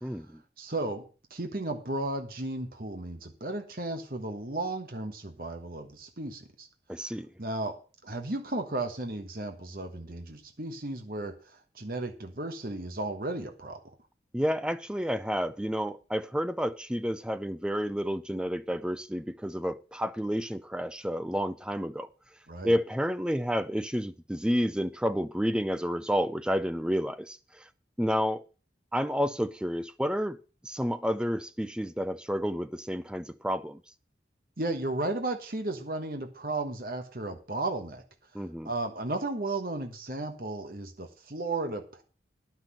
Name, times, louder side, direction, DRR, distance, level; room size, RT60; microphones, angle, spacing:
voice 1, 0.0-0.4 6.9-7.3 14.3-22.1 22.6-27.7 28.0-28.4 28.9-30.4 30.6-33.8 38.3-38.7, equal, 5° right, 0.4 m, -30 dB
voice 2, 0.6-6.7 7.4-13.9 22.5-22.7 34.6-38.0 38.6-42.0, right 2 dB, 50° right, 1.3 m, -34 dB
10.5 x 6.0 x 7.4 m
head